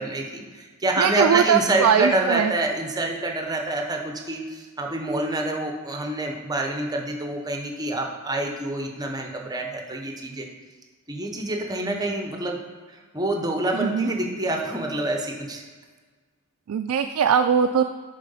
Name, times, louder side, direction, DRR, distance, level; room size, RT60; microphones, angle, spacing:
voice 1, 0.0-10.5 11.1-12.6 13.1-15.6, right 2 dB, 20° right, 1 dB, 0.8 m, -27 dB
voice 2, 1.0-2.5 13.7-14.1 16.7-17.8, right 7 dB, 80° right, 7 dB, 0.3 m, -21 dB
7.5 x 3.6 x 5.5 m, 1.4 s
head